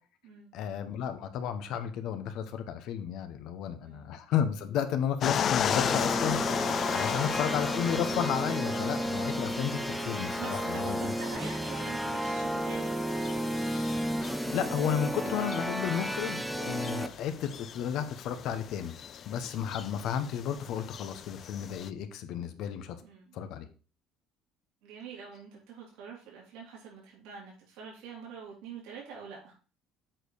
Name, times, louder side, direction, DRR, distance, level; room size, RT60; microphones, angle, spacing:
voice 1, 0.5-11.1 14.4-19.0 19.3-23.0 23.3-23.7, left 9 dB, 70° left, 9 dB, 1.0 m, -33 dB
sound 1, 5.2-21.9, left 8 dB, 45° left, 0.4 m, -36 dB
sound 2, 5.6-17.1, right 1 dB, ahead, 0.6 m, -33 dB
voice 2, 7.0-7.3 10.4-13.0 23.0-23.4 24.8-29.5, right 6 dB, 85° right, -3 dB, 3.4 m, -45 dB
7.9 x 4.5 x 4.8 m, 0.37 s
cardioid pair, 115°, 0 cm